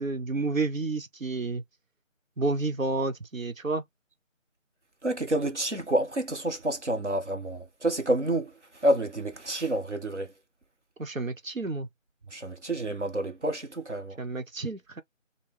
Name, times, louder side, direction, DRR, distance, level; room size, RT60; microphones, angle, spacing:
voice 1, 0.0-1.6 2.4-3.8 11.0-11.9 14.2-15.0, right 3 dB, 85° right, 1.1 m, -30 dB
voice 2, 5.0-8.5 8.8-10.3 12.3-14.2, right 1 dB, 60° right, 1.1 m, -28 dB
3.8 x 2.2 x 3.0 m
figure-of-eight pair, 180°, 39 cm